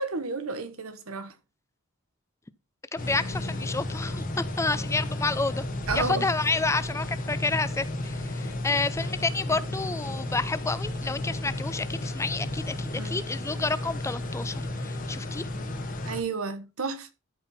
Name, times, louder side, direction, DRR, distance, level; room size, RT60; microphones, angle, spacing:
voice 1, 0.0-1.3 5.9-6.3 9.5-9.6 12.9-13.2 16.0-17.1, right 4 dB, 85° right, 1.3 m, -32 dB
voice 2, 2.9-5.7 5.9-15.5, left 3 dB, 15° left, 0.5 m, -30 dB
sound 1, 3.0-16.2, left 1 dB, 40° left, 1.5 m, -33 dB
13.0 x 4.5 x 4.2 m
head